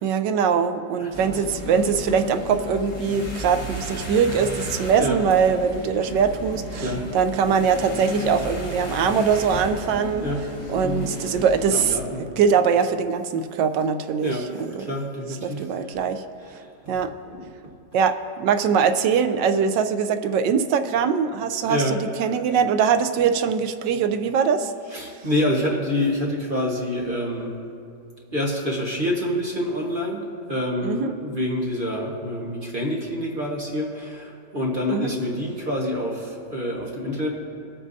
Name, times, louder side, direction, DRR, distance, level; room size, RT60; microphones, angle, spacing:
voice 1, 0.0-10.2 10.7-14.9 15.4-16.2 16.5-16.6 16.9-17.1 17.9-24.7 30.8-31.1 34.9-35.1, right 6 dB, 90° right, 8 dB, 1.3 m, -22 dB
voice 2, 1.0-1.3 5.0-5.2 6.8-7.1 10.2-10.4 10.8-11.1 11.7-12.2 14.2-14.5 14.8-16.0 16.6-17.0 17.3-17.4 21.7-22.0 24.9-27.5 28.3-37.4, left 1 dB, 30° right, -2 dB, 1.3 m, -27 dB
sound 1, 1.1-12.0, left 2 dB, 40° left, 2.2 m, -34 dB
21.0 x 8.6 x 2.7 m, 2.5 s
omnidirectional pair, 1.9 m